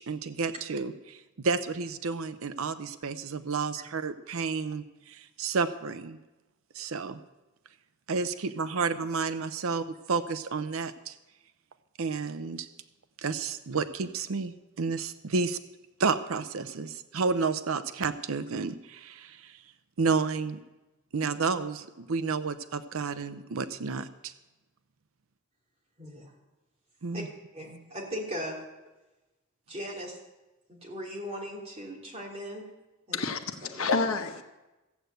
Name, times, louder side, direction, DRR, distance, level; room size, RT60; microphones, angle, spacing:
voice 1, 0.0-6.2 6.7-7.2 8.1-9.8 10.1-11.1 12.0-12.7 13.2-15.6 16.0-19.6 20.0-20.6 21.1-24.3 27.0-27.3, right 4 dB, 80° right, 11 dB, 0.6 m, -31 dB
voice 2, 26.0-26.3 27.1-27.2 27.5-28.6 29.7-30.2 30.7-32.7 33.1-33.2 33.6-33.9, equal, 30° right, -3 dB, 3.2 m, -38 dB
voice 3, 33.1-34.4, left 4 dB, 85° left, 7 dB, 1.1 m, -29 dB
14.5 x 8.1 x 7.8 m, 1.1 s
head